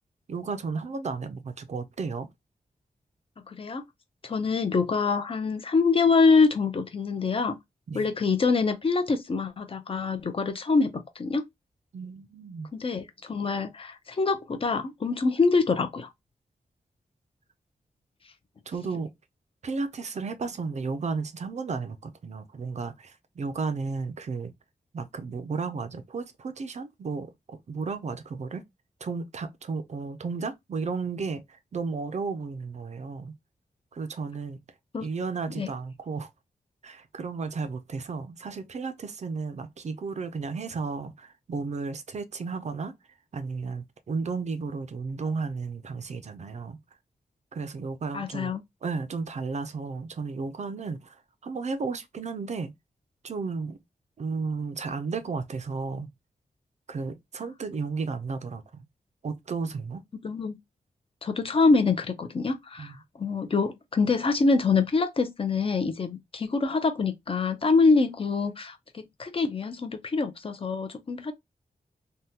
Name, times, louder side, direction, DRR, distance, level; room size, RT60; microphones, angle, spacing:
voice 1, 0.3-2.3 7.9-8.1 11.9-12.7 18.7-19.1 19.6-24.5 24.9-28.6 29.0-33.4 33.9-34.6 35.0-36.3 36.8-42.9 43.3-46.8 47.5-48.5 48.8-52.7 53.2-53.8 54.2-56.1 56.9-58.8 59.2-60.0 62.8-63.0, right 4 dB, 50° right, 0.4 m, -33 dB
voice 2, 3.5-3.8 4.2-7.6 7.9-11.5 12.7-16.1 34.9-35.1 35.5-35.7 48.1-48.6 60.1-60.6 61.2-71.3, left 4 dB, 35° left, 0.5 m, -25 dB
3.5 x 2.1 x 2.7 m
wide cardioid pair, 160°, 15 cm